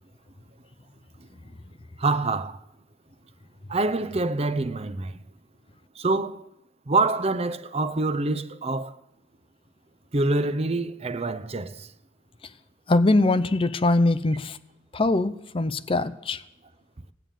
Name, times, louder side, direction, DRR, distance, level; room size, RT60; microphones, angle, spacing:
voice 1, 2.0-2.6 3.7-5.2 6.0-6.5 6.9-9.0 10.1-11.9, right 2 dB, 30° right, 0.6 m, -26 dB
voice 2, 12.9-14.6 14.9-16.4, left 2 dB, 25° left, 0.5 m, -22 dB
16.5 x 9.1 x 9.1 m
head